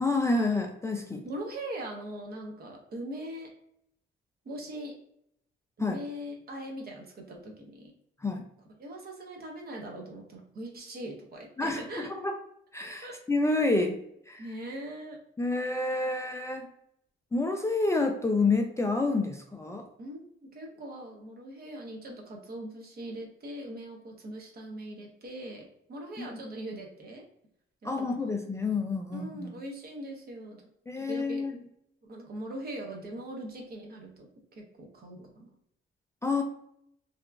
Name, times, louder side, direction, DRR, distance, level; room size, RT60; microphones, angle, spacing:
voice 1, 0.0-1.3 5.8-6.0 8.2-8.4 11.6-12.4 12.7-14.0 14.3-14.4 15.4-16.7 17.3-19.8 26.2-26.3 27.8-29.6 30.9-31.5 36.2-36.4, left 3 dB, 15° left, 3 dB, 0.3 m, -28 dB
voice 2, 1.2-3.5 4.4-5.0 5.8-7.9 8.8-12.1 13.0-13.2 14.4-15.2 20.0-27.2 27.8-28.3 29.1-30.6 31.1-31.5 32.0-34.3 34.6-35.5, right 1 dB, 50° right, 1 dB, 0.8 m, -41 dB
2.8 x 2.4 x 2.3 m, 0.73 s
cardioid pair, 90°, 20 cm